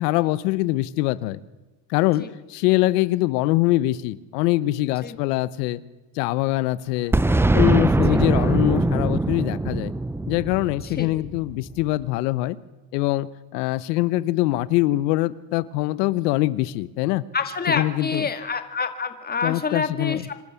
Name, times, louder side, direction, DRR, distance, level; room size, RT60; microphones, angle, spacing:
voice 1, 0.0-1.4 1.9-5.8 6.2-7.2 7.5-9.9 10.3-12.6 12.9-17.2 17.7-18.3 19.4-20.3, left 17 dB, 85° left, 18 dB, 1.1 m, -23 dB
Boom, 7.1-11.8, right 2 dB, 5° right, 0.6 m, -22 dB
voice 2, 17.3-20.3, left 5 dB, 20° left, 8 dB, 2.2 m, -27 dB
26.5 x 12.5 x 8.3 m, 1.2 s
supercardioid pair, 110°, 47 cm